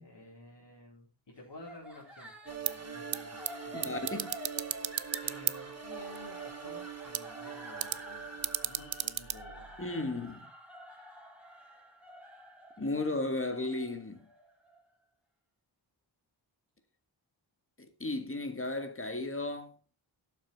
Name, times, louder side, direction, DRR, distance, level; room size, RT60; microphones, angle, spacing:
voice 1, 0.0-4.0 5.2-9.9, left 2 dB, 65° left, 4.1 m, -52 dB
sound 1, 1.6-14.8, right 1 dB, 5° right, 3.4 m, -49 dB
sound 2, 2.5-9.4, right 6 dB, 35° right, 1.3 m, -44 dB
sound 3, 2.5-10.3, right 11 dB, 85° right, 0.6 m, -38 dB
voice 2, 3.7-4.3 9.8-10.5 12.8-14.2 18.0-19.7, left 2 dB, 30° left, 1.6 m, -34 dB
12.0 x 7.3 x 4.5 m
wide cardioid pair, 105°, 45 cm